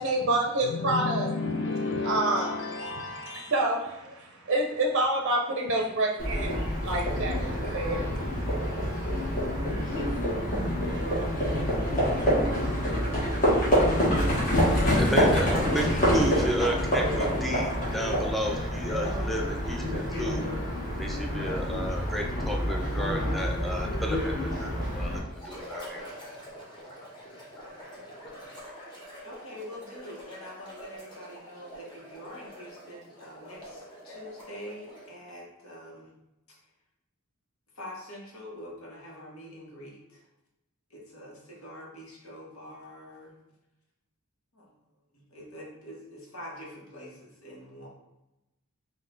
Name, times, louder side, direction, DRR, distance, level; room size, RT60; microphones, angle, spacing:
voice 1, 0.0-1.5 1.9-9.8, right 2 dB, 55° right, 0 dB, 0.5 m, -29 dB
sound 1, 0.6-3.6, left 3 dB, 55° left, 0.4 m, -32 dB
Livestock farm animals working animals, 6.2-25.2, equal, 40° left, 1.3 m, -27 dB
voice 2, 14.5-20.5 21.0-26.0, equal, ahead, 0 dB, 0.5 m, -33 dB
sound 2, 25.3-35.2, equal, 20° left, 1.0 m, -45 dB
voice 3, 29.2-36.1 37.7-40.2 40.9-43.4 44.5-44.7 45.3-47.9, equal, 75° left, -3 dB, 1.2 m, -45 dB
3.9 x 2.4 x 3.7 m, 0.94 s
head